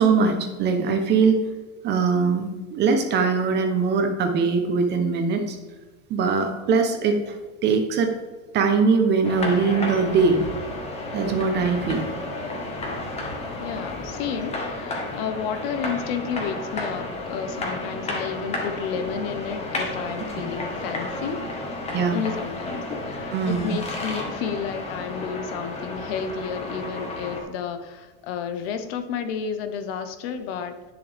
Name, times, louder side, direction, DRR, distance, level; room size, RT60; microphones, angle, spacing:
voice 1, 0.0-1.4 1.8-5.6 6.1-7.4 7.6-8.1 8.5-10.4 11.1-12.0 21.9-22.2 23.3-23.8, right 5 dB, 30° right, 5 dB, 0.9 m, -21 dB
sound 1, 9.2-27.4, left 2 dB, 20° left, 1.4 m, -32 dB
voice 2, 13.6-21.4 22.1-30.8, left 7 dB, 60° left, 9 dB, 1.2 m, -31 dB
10.0 x 7.1 x 3.5 m, 1.4 s
supercardioid pair, 155°, 33 cm